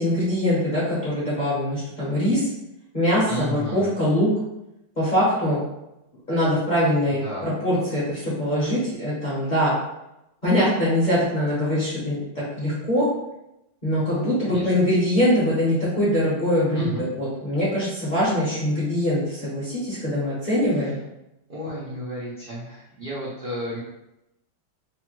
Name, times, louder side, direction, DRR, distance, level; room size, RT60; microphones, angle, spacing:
voice 1, 0.0-2.5 2.9-4.3 5.0-5.6 6.3-9.7 10.4-13.1 13.8-21.0, equal, 40° left, -9 dB, 0.6 m, -23 dB
voice 2, 3.3-3.9 7.1-7.5 14.1-14.6 16.7-17.0 21.5-23.8, equal, 80° right, -8 dB, 0.4 m, -33 dB
3.2 x 2.2 x 3.0 m, 0.88 s
omnidirectional pair, 2.0 m